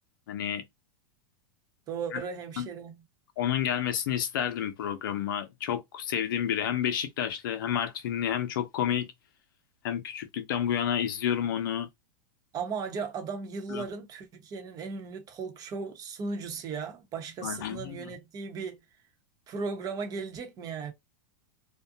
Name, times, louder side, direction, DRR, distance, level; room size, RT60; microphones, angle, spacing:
voice 1, 0.3-0.6 2.1-2.2 2.6-2.7 3.4-9.1 9.8-11.9 13.7-13.8 17.4-18.1, left 9 dB, 75° left, 0.6 m, -30 dB
voice 2, 1.9-3.0 12.5-18.8 19.5-20.9, right 5 dB, 35° right, 0.8 m, -36 dB
2.5 x 2.2 x 2.6 m
supercardioid pair, 125°, 11 cm